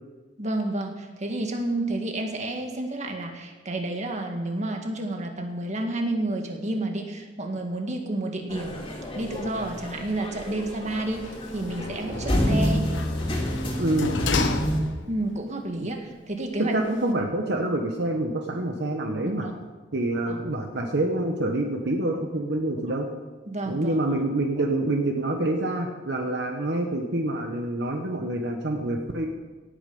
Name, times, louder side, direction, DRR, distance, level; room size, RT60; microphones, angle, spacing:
voice 1, 0.4-8.9 9.1-11.2 11.5-12.8 15.1-16.7 19.2-19.5 20.2-20.4 23.5-24.1, right 1 dB, 40° right, 3 dB, 1.8 m, -30 dB
sound 1, 8.5-14.8, equal, 30° left, 2.9 m, -28 dB
Sliding door, 11.1-15.3 15.7-15.8, left 3 dB, 90° left, 1.1 m, -32 dB
voice 2, 13.8-14.1 15.8-15.9 16.6-19.5 19.9-23.1 23.7-29.3, right 1 dB, 65° right, 3 dB, 1.2 m, -27 dB
17.5 x 8.7 x 5.4 m, 1.3 s
head